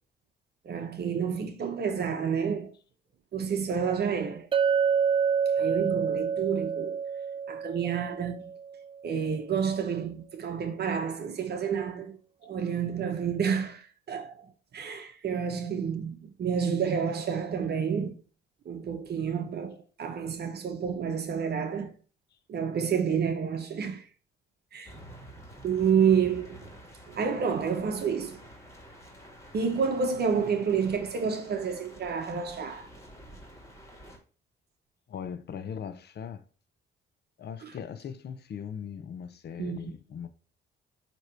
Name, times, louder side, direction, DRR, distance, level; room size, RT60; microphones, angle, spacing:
voice 1, 0.6-2.7 3.3-4.5 5.6-7.0 7.5-8.5 9.0-12.2 12.4-18.2 18.6-21.9 22.5-24.0 24.7-24.9 25.6-26.6 27.1-28.4 29.5-32.9 37.6-37.7 39.6-39.9, right 6 dB, 55° right, 0.9 m, -29 dB
Chink clink, 4.5-8.7, right 7 dB, 25° right, 0.4 m, -27 dB
sound 1, 24.9-34.2, right 1 dB, 15° left, 2.1 m, -49 dB
voice 2, 35.1-36.4 37.4-40.3, left 7 dB, 55° left, 0.8 m, -39 dB
8.1 x 3.0 x 4.5 m
cardioid pair, 90°, 20 cm